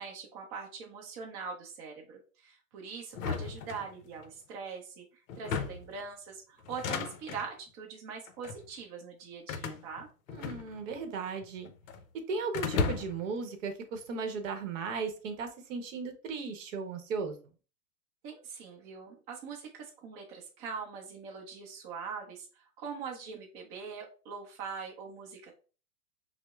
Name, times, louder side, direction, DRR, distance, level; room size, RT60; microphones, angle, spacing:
voice 1, 0.0-10.1 18.2-25.6, right 5 dB, 25° right, -1 dB, 0.6 m, -42 dB
sound 1, 3.1-4.3 5.3-6.0 6.6-7.5 8.3-8.7 9.5-11.0 11.3-12.0 12.5-13.3, left 5 dB, 55° left, 0.6 m, -35 dB
voice 2, 10.3-11.7 12.3-17.4, right 4 dB, 50° right, 6 dB, 0.9 m, -36 dB
5.8 x 2.1 x 2.3 m, 0.37 s
hypercardioid pair, 130°, 48 cm